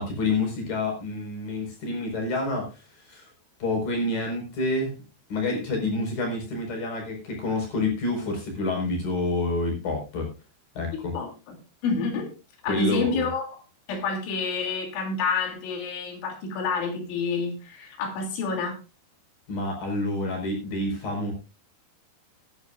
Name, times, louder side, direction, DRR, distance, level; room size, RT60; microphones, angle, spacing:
voice 1, 0.0-3.3 3.6-4.9 5.3-10.3 10.8-11.1 12.7-13.3 19.5-21.3, left 2 dB, 50° left, 2 dB, 6.3 m, -28 dB
voice 2, 11.8-12.3 12.6-13.5 13.9-18.8, left 4 dB, 85° left, 4 dB, 5.2 m, -28 dB
19.5 x 10.5 x 2.5 m, 0.29 s
omnidirectional pair, 5.3 m